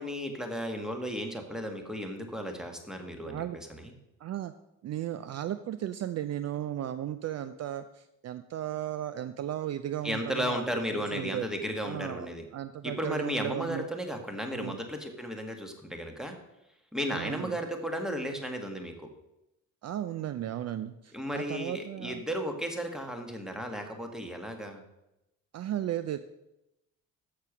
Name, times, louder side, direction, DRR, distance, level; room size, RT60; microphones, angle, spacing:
voice 1, 0.0-3.9 10.0-12.4 12.8-16.3 16.9-18.9 21.1-24.8, equal, ahead, 4 dB, 1.5 m, -34 dB
voice 2, 3.2-3.6 4.2-4.5 4.8-10.6 10.9-11.4 11.8-12.3 12.5-13.8 14.5-14.8 17.1-17.6 19.8-22.2 25.5-26.2, right 11 dB, 50° right, 13 dB, 0.5 m, -35 dB
6.7 x 6.7 x 6.0 m, 0.91 s
supercardioid pair, 75°, 34 cm